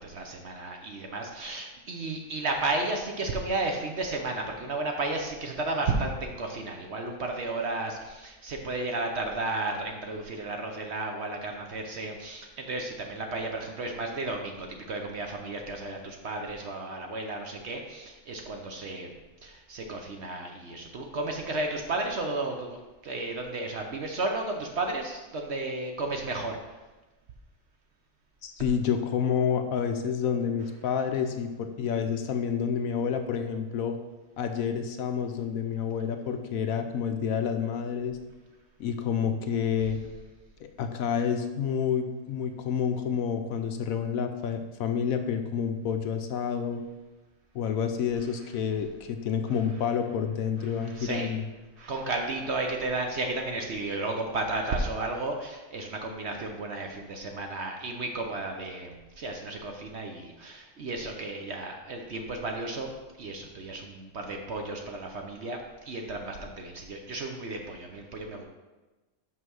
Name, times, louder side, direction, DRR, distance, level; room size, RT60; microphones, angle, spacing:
voice 1, 0.0-19.1 19.4-26.6 50.8-51.3 51.8-62.9 63.2-68.4, right 2 dB, 55° right, 3 dB, 0.9 m, -33 dB
voice 2, 28.4-34.0 34.4-38.2 38.8-40.0 40.6-46.8 47.5-51.5, left 7 dB, 70° left, 6 dB, 1.0 m, -29 dB
5.7 x 5.5 x 6.2 m, 1.2 s
omnidirectional pair, 1.6 m